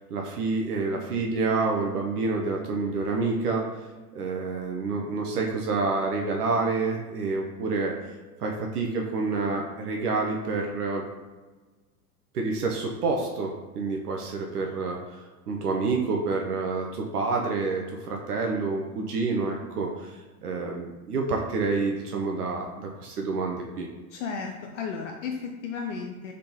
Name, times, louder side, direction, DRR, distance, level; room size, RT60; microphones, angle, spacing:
voice 1, 0.1-3.8 4.1-7.9 8.4-11.0 12.3-23.9, right 3 dB, 75° right, 0 dB, 0.7 m, -28 dB
voice 2, 24.1-26.3, left 5 dB, 50° left, 2 dB, 0.5 m, -34 dB
3.7 x 3.6 x 2.8 m, 1.3 s
figure-of-eight pair, 85°, 47 cm